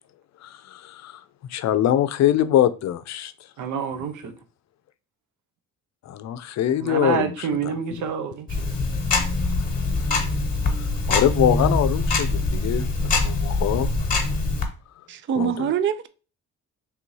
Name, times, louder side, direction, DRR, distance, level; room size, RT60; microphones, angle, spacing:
voice 1, 0.4-1.2 1.5-3.3 6.1-7.3 11.1-13.9 15.4-15.7, left 11 dB, 65° left, 0.5 m, -23 dB
voice 2, 3.6-4.3 6.7-8.5, right 6 dB, 75° right, 0.8 m, -27 dB
Tick-tock, 8.5-14.7, left 3 dB, 30° left, 1.3 m, -23 dB
voice 3, 15.1-16.1, right 8 dB, 40° right, 0.4 m, -24 dB
3.4 x 2.7 x 4.6 m
cardioid pair, 90°, 30 cm